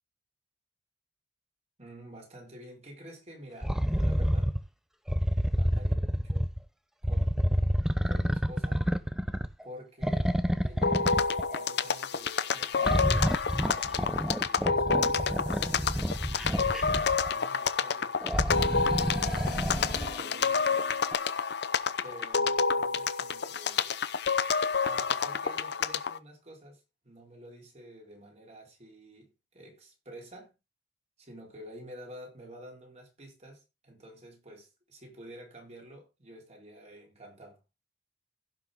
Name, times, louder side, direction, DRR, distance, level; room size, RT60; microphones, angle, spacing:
voice 1, 1.8-4.5 5.5-6.5 7.0-7.6 8.0-8.8 9.6-10.3 10.6-13.4 13.8-21.0 22.0-23.9 24.8-30.5 31.2-37.6, right 1 dB, 35° right, 4.1 m, -49 dB
sound 1, 3.6-4.6 5.1-6.6 7.0-9.6 10.0-11.6 12.8-17.3 18.2-20.2 21.1-21.2, equal, 5° right, 0.6 m, -28 dB
sound 2, 10.8-26.2, left 5 dB, 60° left, 0.8 m, -29 dB
16.0 x 6.0 x 3.6 m
head